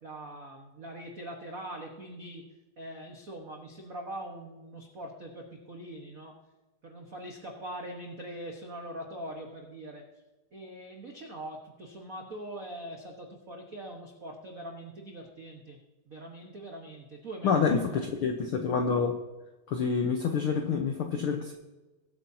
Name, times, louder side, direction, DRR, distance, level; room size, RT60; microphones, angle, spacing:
voice 1, 0.0-6.3 6.8-10.1 10.5-15.8 16.1-18.1, right 1 dB, 85° right, 1 dB, 0.7 m, -42 dB
voice 2, 17.4-19.2 19.7-21.5, left 5 dB, 80° left, 4 dB, 1.2 m, -27 dB
21.0 x 8.6 x 2.8 m, 1.1 s
omnidirectional pair, 3.6 m